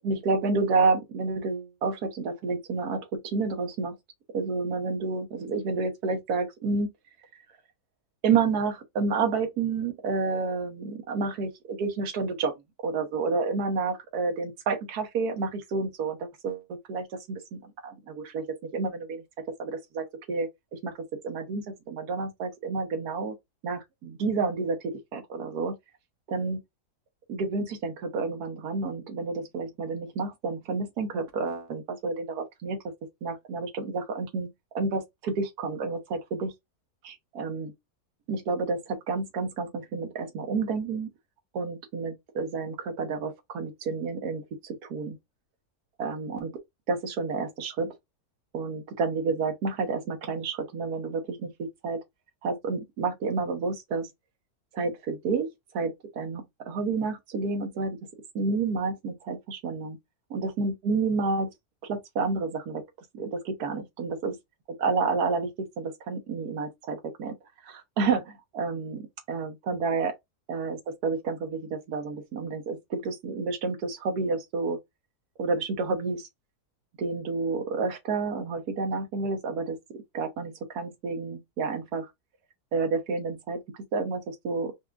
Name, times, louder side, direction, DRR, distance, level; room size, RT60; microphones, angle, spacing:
voice 1, 0.0-4.0 4.3-6.9 7.3-7.4 8.2-12.5 12.8-18.4 18.7-19.2 19.6-20.9 21.2-23.3 23.6-25.7 26.3-26.6 27.3-32.8 33.2-34.5 34.7-36.5 37.0-37.7 38.3-41.1 41.5-45.2 46.0-46.6 46.9-47.9 48.5-52.0 52.4-54.1 54.7-55.5 55.7-58.0 58.3-60.0 60.3-61.5 61.8-62.8 63.1-64.4 64.8-65.5 65.8-67.3 67.6-70.1 70.5-74.8 75.4-76.3 77.0-82.1 82.7-83.6 83.9-84.7, right 4 dB, 75° right, 1.4 m, -30 dB
4.8 x 2.3 x 2.4 m
omnidirectional pair, 1.7 m